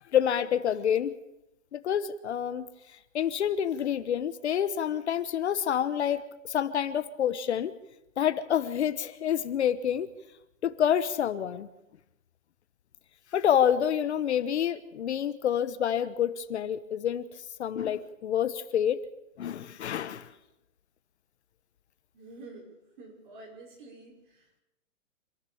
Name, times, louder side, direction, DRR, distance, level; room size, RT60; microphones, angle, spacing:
voice 1, 0.1-1.1 1.7-2.7 3.1-7.7 8.2-10.1 10.6-11.7 13.3-17.3 17.6-19.0 19.4-20.3, left 9 dB, 55° left, 12 dB, 1.1 m, -28 dB
voice 2, 22.1-24.6, right 2 dB, 35° right, 1 dB, 5.7 m, -49 dB
26.5 x 14.5 x 7.1 m, 0.89 s
hypercardioid pair, 175°, 40 cm